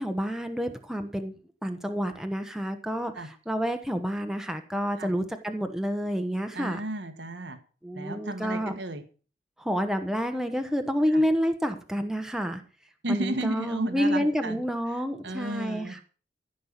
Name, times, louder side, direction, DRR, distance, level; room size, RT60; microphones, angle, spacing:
voice 1, 0.0-1.3 1.6-3.1 3.5-6.8 7.8-8.8 9.6-12.6 13.1-16.0, equal, 5° right, 6 dB, 1.1 m, -29 dB
voice 2, 6.5-7.6 7.9-9.0 11.1-11.2 13.0-14.6 15.2-16.0, right 1 dB, 90° right, 9 dB, 1.5 m, -33 dB
15.0 x 5.6 x 8.2 m, 0.38 s
head